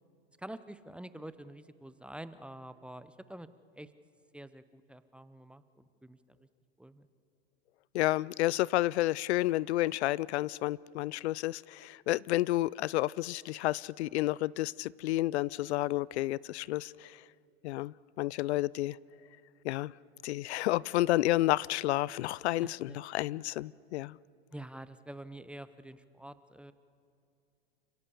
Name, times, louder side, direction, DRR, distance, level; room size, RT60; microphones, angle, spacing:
voice 1, 0.4-3.5 3.7-3.9 4.3-6.2 6.8-7.1 22.6-23.0 24.5-26.7, right 1 dB, 5° right, 13 dB, 0.6 m, -47 dB
voice 2, 7.9-17.2 17.6-19.0 19.6-19.9 20.2-24.2, left 17 dB, 75° left, 24 dB, 0.5 m, -31 dB
30.0 x 17.0 x 7.1 m, 2.7 s
hypercardioid pair, 115°, 33 cm